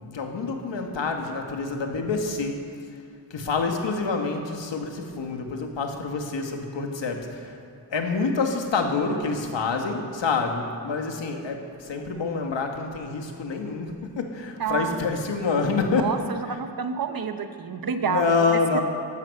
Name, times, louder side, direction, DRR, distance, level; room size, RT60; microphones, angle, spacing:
voice 1, 0.0-2.6 3.3-7.6 7.9-16.2 16.5-16.6 18.0-18.8, left 4 dB, 85° left, 3 dB, 1.8 m, -27 dB
voice 2, 14.6-15.1 16.0-18.2 18.7-18.8, right 6 dB, 55° right, 8 dB, 1.0 m, -29 dB
15.0 x 12.0 x 6.6 m, 2.4 s
wide cardioid pair, 175°, 43 cm